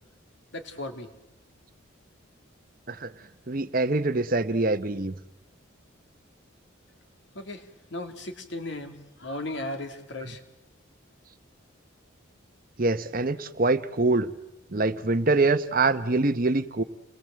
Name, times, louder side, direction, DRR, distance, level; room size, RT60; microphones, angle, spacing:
voice 1, 0.5-1.1 7.3-8.9 9.2-10.4, left 1 dB, 60° left, 7 dB, 2.6 m, -36 dB
voice 2, 3.5-5.1 12.8-14.3 14.7-16.8, right 3 dB, 40° right, 12 dB, 0.9 m, -24 dB
29.0 x 21.5 x 7.6 m, 0.95 s
head